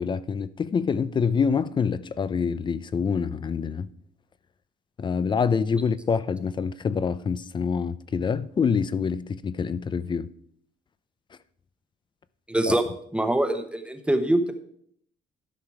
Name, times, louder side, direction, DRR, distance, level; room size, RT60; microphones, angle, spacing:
voice 1, 0.0-3.9 5.0-10.3 12.7-12.8, left 6 dB, 30° left, 0.4 m, -26 dB
voice 2, 12.5-12.8 13.1-14.5, right 1 dB, 5° right, 1.0 m, -23 dB
12.0 x 5.8 x 4.8 m
cardioid pair, 110°, 17 cm